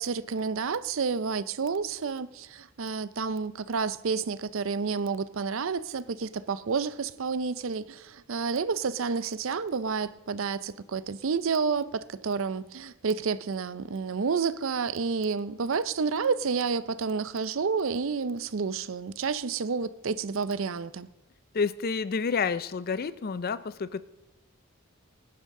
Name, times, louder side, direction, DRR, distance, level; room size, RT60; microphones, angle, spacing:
voice 1, 0.0-21.1, right 5 dB, 65° right, 0.5 m, -30 dB
voice 2, 21.5-24.0, left 5 dB, 45° left, 0.4 m, -29 dB
19.5 x 10.0 x 3.7 m
head